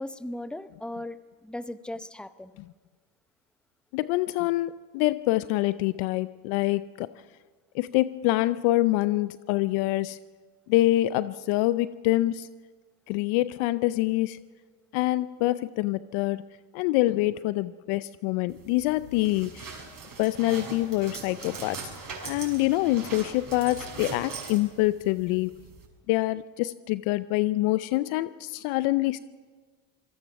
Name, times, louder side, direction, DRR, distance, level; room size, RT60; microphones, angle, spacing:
voice 1, 0.0-2.6, left 1 dB, ahead, 13 dB, 0.7 m, -37 dB
voice 2, 3.9-7.1 7.7-10.2 10.7-12.5 13.1-14.4 14.9-16.4 16.7-19.8 20.2-21.9 22.2-25.6 26.1-29.2, left 17 dB, 70° left, 15 dB, 0.7 m, -26 dB
sound 1, 18.5-25.9, right 4 dB, 40° right, 6.1 m, -41 dB
27.0 x 17.5 x 6.0 m, 1.5 s
supercardioid pair, 85°, 50 cm